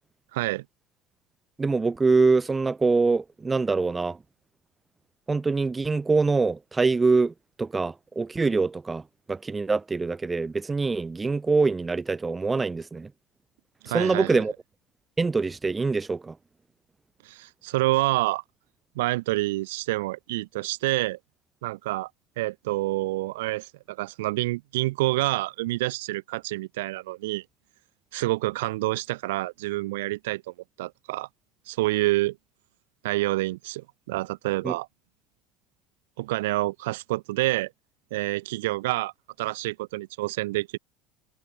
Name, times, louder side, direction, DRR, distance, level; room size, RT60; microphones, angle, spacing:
voice 1, 0.3-0.6 13.8-14.4 17.2-18.4 18.9-21.2 21.6-22.1 22.4-27.4 28.1-30.4 30.8-31.3 31.7-32.4 33.0-34.9 36.2-37.7 38.1-39.1 39.4-40.8, right 19 dB, 70° right, 6.7 m, -27 dB
voice 2, 1.6-4.2 5.3-9.0 9.3-13.1 13.9-14.5 15.2-16.3 34.6-34.7, right 4 dB, 20° right, 6.8 m, -24 dB
hypercardioid pair, 70°, 0 cm